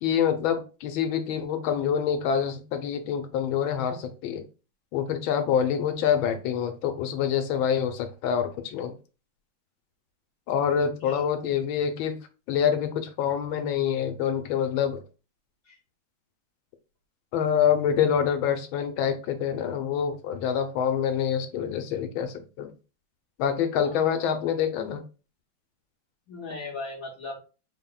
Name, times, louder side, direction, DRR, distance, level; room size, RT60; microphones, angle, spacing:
voice 1, 0.0-4.4 4.9-8.9 10.5-12.2 12.5-15.0 17.3-22.7 23.4-25.0, left 8 dB, 85° left, 8 dB, 1.4 m, -26 dB
voice 2, 11.0-11.6 15.6-15.8 23.8-24.4 26.3-27.4, left 3 dB, 55° left, -5 dB, 1.1 m, -39 dB
4.3 x 2.1 x 3.8 m, 0.33 s
omnidirectional pair, 2.2 m